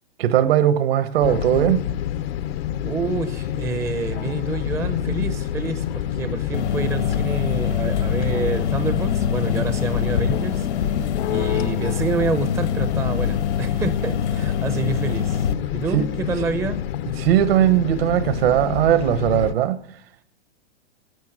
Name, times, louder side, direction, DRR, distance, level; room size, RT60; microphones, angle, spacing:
voice 1, 0.2-1.8 15.9-16.0 17.2-19.8, right 11 dB, 60° right, 1.4 m, -18 dB
sound 1, 1.2-19.5, left 11 dB, 60° left, 0.8 m, -27 dB
voice 2, 2.8-16.8, right 4 dB, 10° right, 0.6 m, -28 dB
sound 2, 6.5-15.5, left 7 dB, 80° left, 1.5 m, -25 dB
12.0 x 8.7 x 9.8 m
hypercardioid pair, 135°, 33 cm